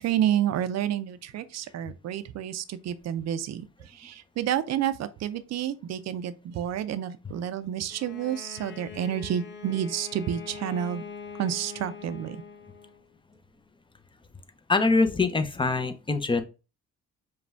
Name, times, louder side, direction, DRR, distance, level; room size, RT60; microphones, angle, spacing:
voice 1, 0.0-11.0 11.4-12.4, right 10 dB, 60° right, 0.5 m, -30 dB
Bowed string instrument, 7.9-13.0, left 6 dB, 40° left, 0.8 m, -43 dB
voice 2, 14.7-16.4, left 3 dB, 15° left, 0.6 m, -24 dB
5.0 x 2.3 x 3.4 m
cardioid pair, 90°, 30 cm